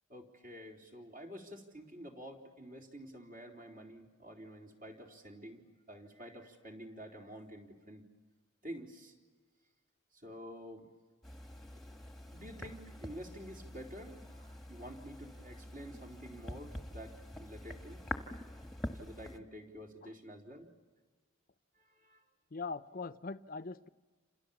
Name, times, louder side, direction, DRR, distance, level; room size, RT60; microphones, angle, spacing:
voice 1, 0.1-8.0 8.6-9.1 10.1-10.9 12.3-18.0 19.0-20.7 21.9-22.2, equal, 45° right, 4.1 m, -49 dB
sound 1, 11.2-19.4, left 1 dB, ahead, 1.5 m, -46 dB
voice 2, 22.5-23.9, left 4 dB, 45° left, 0.7 m, -41 dB
29.0 x 27.5 x 7.2 m
head